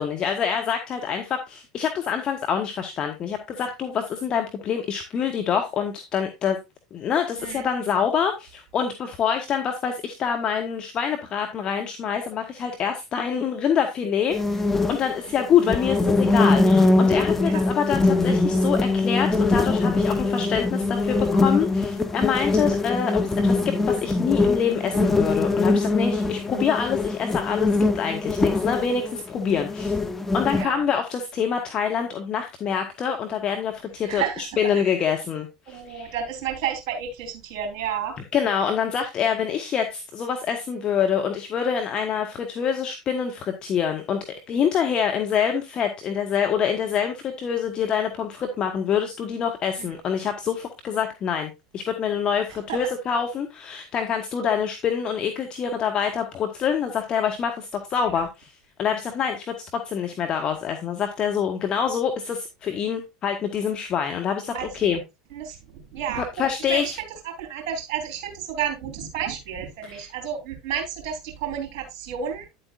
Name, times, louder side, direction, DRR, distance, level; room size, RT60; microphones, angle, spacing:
voice 1, 0.0-6.6 6.9-14.6 14.9-30.0 30.3-34.2 34.6-36.1 38.3-58.5 58.8-59.5 59.9-65.0 66.2-67.0 69.9-70.0, left 7 dB, 35° left, 1.2 m, -26 dB
voice 2, 7.4-7.7 17.4-17.6 28.1-28.2 30.5-30.8 34.1-34.4 34.7-34.9 35.7-38.1 49.8-49.9 52.5-52.8 58.1-58.2 64.5-65.0 65.3-72.5, right 8 dB, 50° right, 3.5 m, -31 dB
sound 1, 14.3-30.6, left 3 dB, 10° left, 1.0 m, -22 dB
9.7 x 7.6 x 2.5 m
figure-of-eight pair, 80°, 2 cm